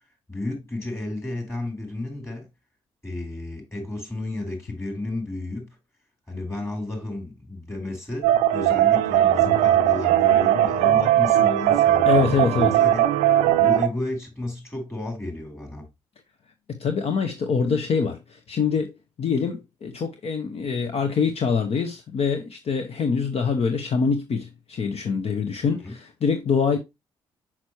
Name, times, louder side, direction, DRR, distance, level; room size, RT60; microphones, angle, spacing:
voice 1, 0.3-2.5 3.0-5.8 6.3-13.0 13.6-15.9 25.6-25.9, left 2 dB, 20° left, 4.4 m, -32 dB
sound 1, 8.2-13.9, right 12 dB, 85° right, 0.5 m, -19 dB
voice 2, 12.0-12.7 16.7-26.8, left 5 dB, 55° left, 0.9 m, -25 dB
6.0 x 5.9 x 3.0 m
supercardioid pair, 55°, 12 cm